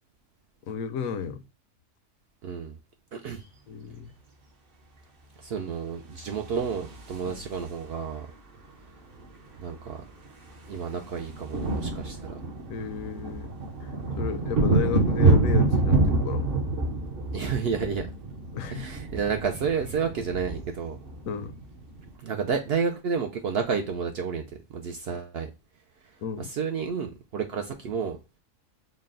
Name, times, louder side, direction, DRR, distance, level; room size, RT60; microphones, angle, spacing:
voice 1, 0.7-1.4 3.7-4.1 7.2-7.4 12.7-13.5 13.8-16.5 18.5-18.9 21.3-21.5 26.2-26.5, left 7 dB, 80° left, 1.0 m, -33 dB
voice 2, 2.4-2.8 3.1-3.4 5.4-8.3 9.6-10.0 10.7-12.4 17.3-18.1 18.7-21.0 22.2-24.4 24.7-25.5 26.0-28.2, right 6 dB, 65° right, 0.6 m, -31 dB
sound 1, 6.3-7.9 9.2-9.3 9.5-9.7 10.0-22.1, right 2 dB, 45° right, 1.0 m, -27 dB
4.0 x 2.2 x 3.6 m
omnidirectional pair, 1.4 m